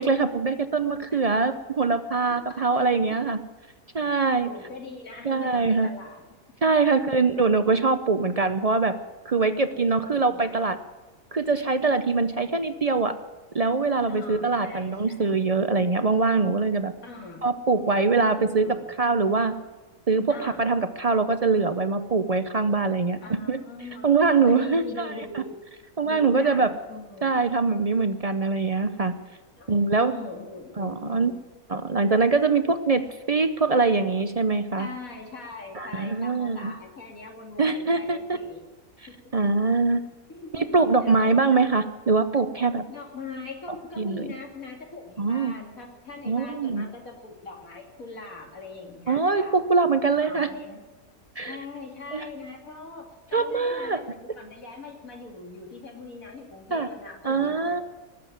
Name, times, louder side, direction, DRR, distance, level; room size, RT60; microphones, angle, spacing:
voice 1, 0.0-3.4 3.9-4.5 5.2-5.9 6.6-8.9 9.3-10.8 11.3-13.1 13.5-16.9 17.4-19.5 20.1-23.6 24.0-25.4 26.0-26.7 27.2-29.1 29.7-30.1 30.8-31.3 31.7-33.0 33.3-34.9 35.7-36.7 37.6-38.4 39.0-40.0 40.5-42.8 44.0-44.3 45.2-45.5 46.3-46.9 49.1-50.5 51.4-51.6 52.1-52.2 53.3-54.0 56.7-56.9 57.2-57.8, right 4 dB, 50° right, 9 dB, 0.4 m, -23 dB
voice 2, 2.5-2.9 4.4-6.2 7.3-7.4 9.8-10.8 14.1-15.3 17.0-17.5 18.4-18.9 20.3-20.7 23.2-25.6 26.0-27.4 29.6-31.3 34.8-38.7 39.1-39.3 40.3-41.8 42.9-49.5 50.1-50.8 51.4-54.1 54.4-57.8, left 3 dB, 75° left, 1 dB, 3.0 m, -41 dB
20.0 x 7.7 x 9.3 m, 1.2 s
omnidirectional pair, 1.5 m